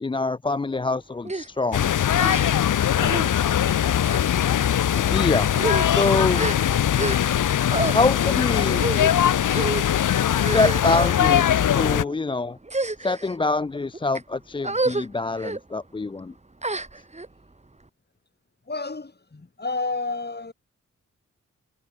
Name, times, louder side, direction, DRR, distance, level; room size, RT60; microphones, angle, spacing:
voice 1, 0.0-1.9 5.1-5.5 5.9-6.5 7.9-8.9 10.5-12.6 13.0-16.3, left 3 dB, 15° left, 0.4 m, -25 dB
sound 1, 1.3-1.5 2.2-2.7 3.0-3.3 4.0-4.3 5.0-5.1 5.5-7.4 7.7-8.0 8.8-9.1 9.5-9.9 10.4-11.2 11.9-12.2 12.6-13.3 13.9-14.2 14.6-15.1 15.4-15.6 16.6-17.3, right 2 dB, 20° right, 2.4 m, -29 dB
sound 2, 1.7-12.0, left 10 dB, 90° left, 1.1 m, -21 dB
voice 2, 18.7-20.5, left 3 dB, 35° left, 6.7 m, -31 dB
cardioid pair, 70°, 30 cm